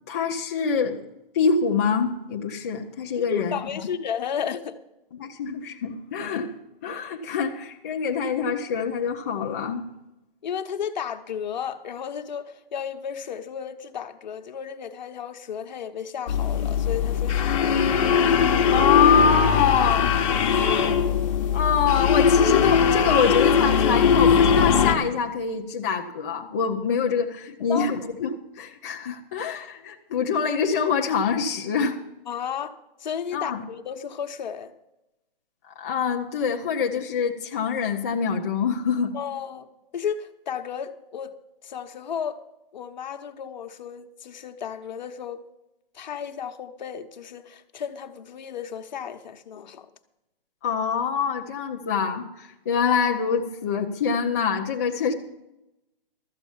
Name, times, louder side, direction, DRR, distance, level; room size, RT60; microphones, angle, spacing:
voice 1, 0.1-1.0 1.3-3.6 5.2-6.5 6.8-9.8 18.7-20.1 21.5-32.0 33.3-33.6 35.8-39.1 50.6-55.1, left 6 dB, 15° left, 0.4 m, -25 dB
voice 2, 3.2-4.8 10.4-17.8 27.5-27.9 32.3-32.7 33.0-34.7 39.1-39.7 39.9-41.3 41.6-42.4 42.7-45.4 45.9-49.9, left 8 dB, 50° left, 1.0 m, -33 dB
sound 1, 16.3-25.0, left 7 dB, 35° left, 1.1 m, -20 dB
13.0 x 8.1 x 7.0 m
hypercardioid pair, 160°, 29 cm